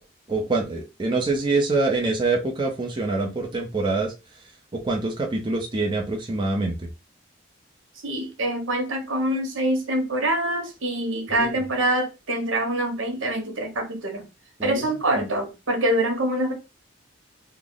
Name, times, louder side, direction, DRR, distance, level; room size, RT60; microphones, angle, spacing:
voice 1, 0.3-4.1 4.8-6.9 11.3-11.5 14.6-14.9 15.2-15.3, right 3 dB, 25° right, 0.6 m, -25 dB
voice 2, 8.0-14.3 14.6-16.5, right 1 dB, 80° right, 1.1 m, -25 dB
3.2 x 2.0 x 3.8 m
head